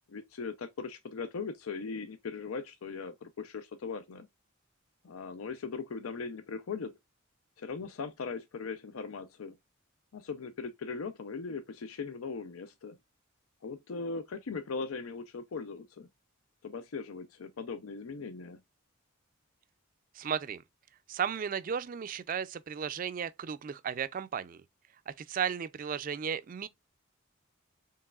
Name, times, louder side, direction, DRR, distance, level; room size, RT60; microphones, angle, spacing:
voice 1, 0.1-4.3 5.0-6.9 7.6-9.6 10.1-13.0 13.6-16.1 16.6-18.6, left 4 dB, 85° left, 0.5 m, -39 dB
voice 2, 20.2-20.6 21.1-24.6 25.1-26.7, right 7 dB, 40° right, 0.3 m, -34 dB
4.6 x 3.1 x 2.3 m
head